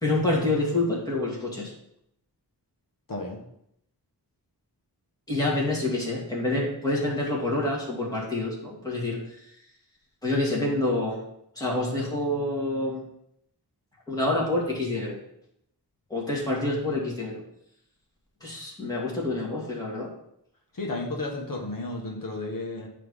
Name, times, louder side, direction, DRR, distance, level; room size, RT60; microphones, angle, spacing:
voice 1, 0.0-1.7 5.3-9.2 10.2-11.2 11.6-13.0 14.1-15.2 16.1-17.4 18.4-20.1, left 2 dB, 10° left, -5 dB, 2.5 m, -27 dB
voice 2, 3.1-3.4 20.7-22.9, left 2 dB, 55° left, 0 dB, 1.5 m, -33 dB
9.5 x 3.4 x 5.6 m, 0.75 s
wide cardioid pair, 105°, 40 cm